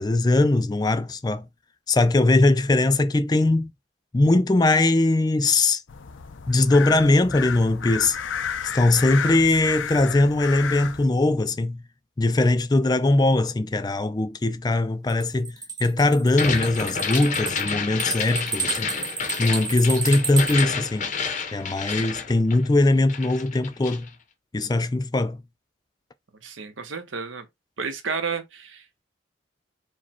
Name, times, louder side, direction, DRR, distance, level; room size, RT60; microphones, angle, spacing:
voice 1, 0.0-1.4 1.9-3.7 4.1-5.8 6.5-8.2 8.7-11.8 12.2-19.0 19.4-21.1 21.5-24.1 24.5-25.4, left 2 dB, 20° left, 0.3 m, -21 dB
sound 1, 5.9-11.1, left 7 dB, 80° left, 0.5 m, -32 dB
sound 2, 15.1-20.6, right 4 dB, 20° right, 1.0 m, -31 dB
sound 3, 16.3-22.8 23.1-24.1, left 5 dB, 40° left, 0.7 m, -30 dB
voice 2, 26.4-27.5 27.8-29.0, right 5 dB, 85° right, 0.9 m, -32 dB
4.8 x 2.2 x 4.3 m
head